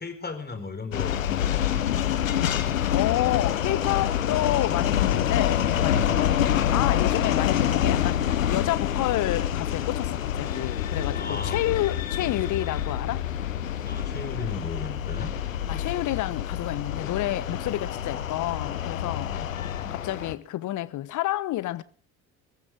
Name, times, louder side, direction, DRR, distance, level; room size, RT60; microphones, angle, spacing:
voice 1, 0.0-1.8 5.8-6.4 11.1-11.7 13.8-15.3 15.6-15.9 17.5-17.7 19.1-20.0, left 4 dB, 25° left, 4.6 m, -37 dB
sound 1, 0.9-20.4, left 10 dB, 80° left, 1.0 m, -27 dB
voice 2, 2.9-13.3 15.7-19.3 19.9-21.8, left 15 dB, 50° left, 1.1 m, -29 dB
26.0 x 14.5 x 3.6 m
figure-of-eight pair, 50°, 39 cm